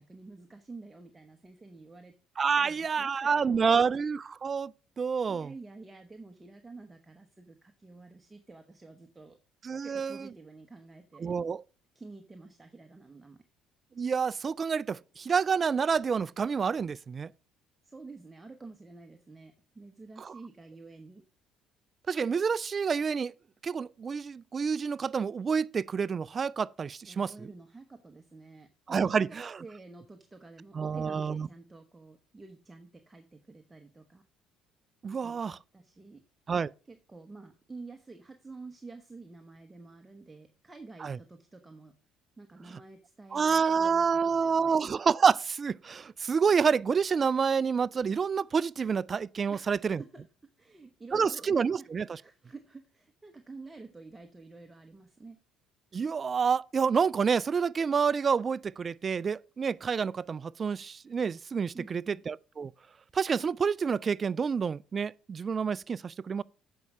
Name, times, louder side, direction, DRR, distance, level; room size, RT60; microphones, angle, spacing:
voice 1, 0.0-2.2 2.6-3.8 5.3-9.4 9.8-11.3 11.9-13.4 17.8-21.2 27.1-34.2 35.2-36.2 36.9-41.9 42.4-44.8 49.5-50.3 50.6-51.9 52.2-55.4 61.7-62.2, right 3 dB, 15° right, 1.0 m, -49 dB
voice 2, 2.4-4.7 5.0-5.5 9.6-10.2 11.2-11.6 14.0-17.3 20.2-20.3 22.1-23.3 23.6-27.3 28.9-29.5 30.8-31.5 35.0-35.6 36.5-36.7 41.0-41.2 43.3-50.0 51.1-52.1 55.9-62.7 63.1-66.4, right 6 dB, 35° right, 0.3 m, -28 dB
8.2 x 5.5 x 5.9 m
supercardioid pair, 90°, 0 cm